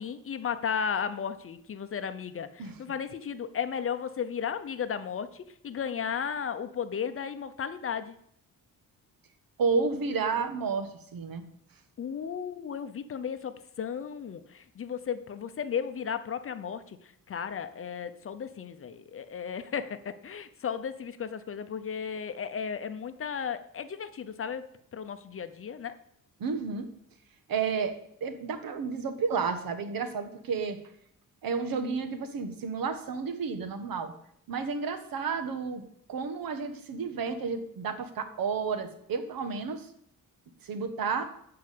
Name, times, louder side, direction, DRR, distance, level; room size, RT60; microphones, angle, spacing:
voice 1, 0.0-8.1 12.0-17.0 17.3-24.7 24.9-26.0, left 7 dB, 40° left, 10 dB, 0.6 m, -34 dB
voice 2, 9.6-11.4 26.4-26.9 27.5-27.9 28.2-30.8 31.4-34.1 34.5-35.8 36.1-39.9 40.6-41.2, right 5 dB, 75° right, 8 dB, 1.4 m, -31 dB
13.0 x 4.8 x 8.5 m, 0.71 s
wide cardioid pair, 170°, 35 cm